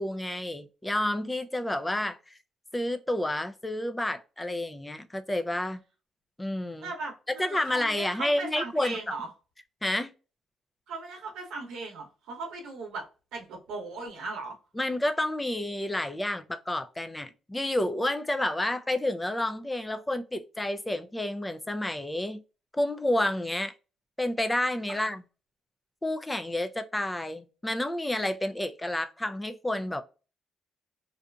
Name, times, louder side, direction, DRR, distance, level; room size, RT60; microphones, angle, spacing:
voice 1, 0.0-2.2 2.7-5.8 6.4-6.9 7.4-9.0 9.8-10.1 14.8-22.4 22.7-23.7 24.2-25.2 26.0-30.0, left 1 dB, 10° left, 0.4 m, -30 dB
voice 2, 6.8-9.3 10.9-13.1 13.3-14.6 24.9-25.0, right 3 dB, 85° right, 0.8 m, -38 dB
2.6 x 2.4 x 2.2 m
cardioid pair, 90°, 0 cm